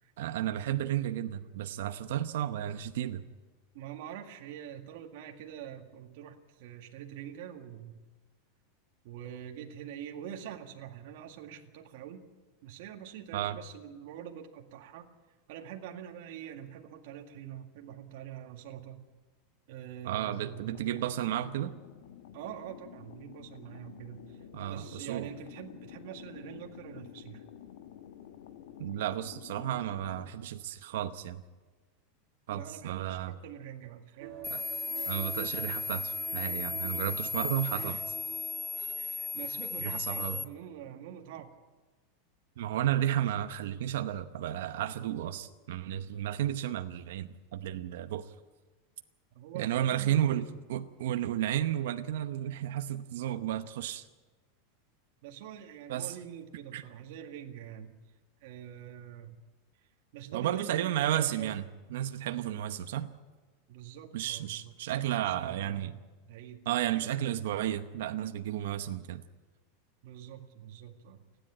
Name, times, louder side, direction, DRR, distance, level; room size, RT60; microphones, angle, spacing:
voice 1, 0.2-3.2 13.3-13.6 20.0-21.8 24.5-25.3 28.8-31.4 32.5-33.3 34.5-34.6 35.1-38.0 38.8-38.9 39.8-40.4 42.6-48.3 49.5-54.1 55.9-56.1 56.7-56.8 60.3-61.6 61.9-63.1 64.1-65.9 66.7-69.2, right 11 dB, 70° right, 8 dB, 0.9 m, -33 dB
voice 2, 3.7-8.1 9.0-12.2 12.6-15.1 15.5-19.0 19.7-20.8 22.3-27.4 32.5-34.4 37.7-38.0 38.9-41.6 49.3-50.6 55.2-57.9 58.4-59.4 59.8-61.5 63.7-66.0 66.2-66.7 66.9-67.2 70.0-71.2, right 10 dB, 55° right, 3 dB, 2.0 m, -45 dB
sound 1, 20.4-30.3, left 10 dB, 70° left, 1.4 m, -50 dB
sound 2, 34.2-40.4 40.8-40.9, right 11 dB, 35° right, 0.7 m, -48 dB
sound 3, 34.4-40.4, left 4 dB, 10° left, 0.6 m, -35 dB
29.0 x 10.5 x 8.8 m, 1.3 s
supercardioid pair, 175°, 0 cm